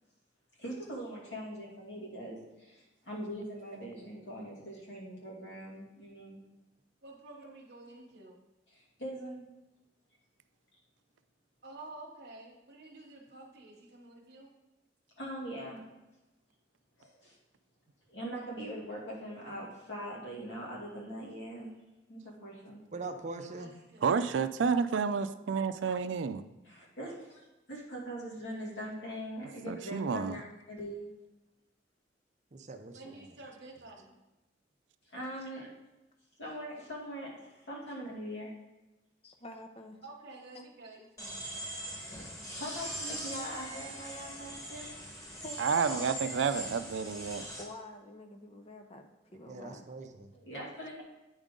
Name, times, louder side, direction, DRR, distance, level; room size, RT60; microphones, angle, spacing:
voice 1, 0.6-6.4 8.7-9.4 15.2-15.8 17.0-17.4 18.1-21.7 22.1-22.8 26.6-31.1 35.1-35.7 36.4-38.5 41.9-44.9 50.3-51.0, equal, 75° left, -4 dB, 2.4 m, -42 dB
voice 2, 7.0-8.4 11.6-14.5 23.6-24.9 32.9-34.1 40.0-41.1, right 2 dB, 60° right, 0 dB, 1.1 m, -50 dB
voice 3, 22.9-23.7 32.5-33.2 49.5-50.3, right 3 dB, 40° right, 7 dB, 0.5 m, -42 dB
voice 4, 24.0-26.4 29.7-30.4 45.6-47.4, right 6 dB, 90° right, 12 dB, 0.4 m, -30 dB
voice 5, 39.2-40.1 40.5-40.7 45.4-46.1 47.5-49.9, left 1 dB, 35° left, 6 dB, 0.7 m, -48 dB
sound 1, 41.2-47.6, equal, 15° left, 1.3 m, -41 dB
8.9 x 5.1 x 3.7 m, 1.0 s
head